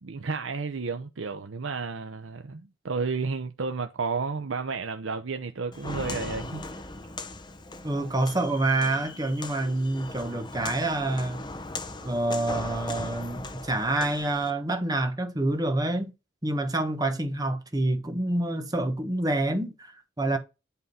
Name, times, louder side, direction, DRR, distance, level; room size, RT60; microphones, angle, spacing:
voice 1, 0.0-6.6, right 4 dB, 80° right, 0.7 m, -32 dB
Walk footsteps, 5.7-14.5, left 3 dB, 20° left, 0.9 m, -38 dB
voice 2, 7.8-11.4 12.0-16.1 16.4-20.4, right 2 dB, 20° right, 1.3 m, -27 dB
8.2 x 3.7 x 5.5 m
head